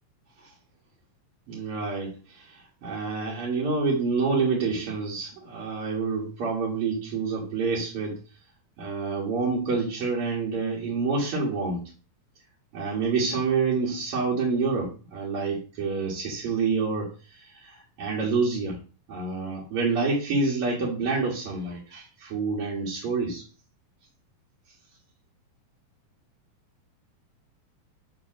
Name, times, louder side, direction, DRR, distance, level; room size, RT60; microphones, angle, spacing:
voice 1, 1.5-8.2 8.8-11.8 12.7-18.8 19.1-23.4, right 4 dB, 50° right, -5 dB, 2.1 m, -28 dB
7.1 x 3.3 x 6.1 m, 0.34 s
omnidirectional pair, 4.1 m